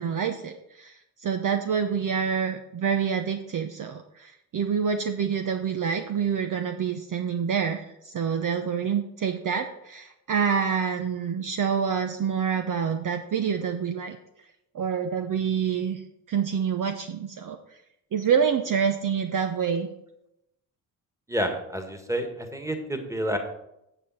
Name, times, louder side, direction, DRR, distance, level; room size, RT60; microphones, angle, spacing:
voice 1, 0.0-14.2 14.7-16.0 16.3-17.6 18.1-19.9, right 7 dB, 45° right, 6 dB, 0.8 m, -27 dB
voice 2, 21.3-23.4, equal, 5° right, 5 dB, 1.8 m, -29 dB
8.5 x 6.9 x 4.3 m, 0.82 s
hypercardioid pair, 50°, 46 cm